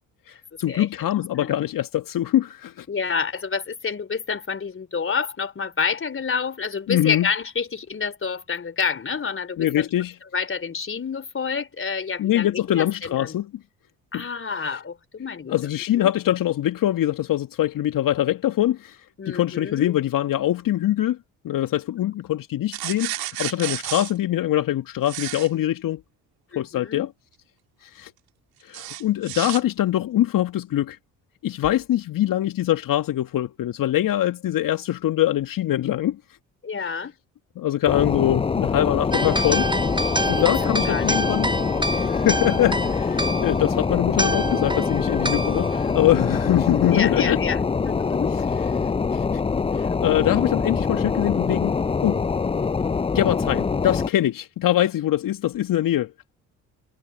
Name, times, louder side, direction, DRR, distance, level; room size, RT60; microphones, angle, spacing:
voice 1, 0.3-2.9 6.9-7.3 9.6-10.1 12.2-13.5 14.1-14.2 14.7-14.8 15.5-21.2 21.4-26.0 26.6-27.1 27.8-28.1 28.6-31.0 31.4-36.2 36.8-36.9 37.6-39.7 40.3-41.5 41.9-47.4 48.8-49.2 49.7-52.2 53.1-56.3, left 13 dB, 55° left, 2.2 m, -23 dB
voice 2, 2.9-9.9 10.3-13.4 14.1-15.5 16.0-16.1 19.2-19.9 26.5-27.1 36.6-37.2 40.4-41.2 46.9-48.4, left 5 dB, 30° left, 3.5 m, -28 dB
sound 1, 22.7-24.1 25.1-25.5 28.7-29.6, right 15 dB, 65° right, 3.4 m, -31 dB
sound 2, 37.9-54.1, left 5 dB, 15° left, 0.5 m, -24 dB
sound 3, 39.1-47.0, right 1 dB, 10° right, 5.5 m, -28 dB
figure-of-eight pair, 50°, 40 cm